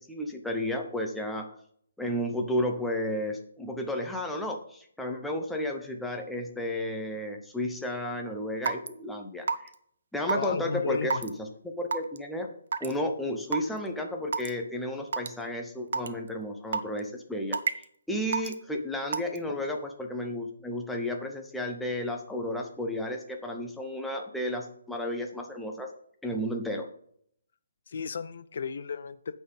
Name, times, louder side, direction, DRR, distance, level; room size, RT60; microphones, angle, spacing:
voice 1, 0.1-1.5 2.0-9.7 10.1-11.5 11.8-12.5 12.8-25.9 26.2-26.9, left 1 dB, ahead, 2 dB, 0.8 m, -32 dB
Raindrop / Water tap faucet / Drip, 8.6-8.9 9.5-9.7 10.3-10.4 11.1-11.3 11.9-12.2 12.7-12.9 13.5-13.6 14.3-14.5 15.1-15.3 15.9-16.1 16.7-17.0 17.5-17.8 18.3-18.5 19.1-19.4, right 5 dB, 60° right, 0.8 m, -28 dB
voice 2, 10.3-11.2 19.5-19.6 27.9-29.4, left 6 dB, 50° left, 13 dB, 0.5 m, -34 dB
9.1 x 4.3 x 7.2 m, 0.65 s
hypercardioid pair, 165°, 0 cm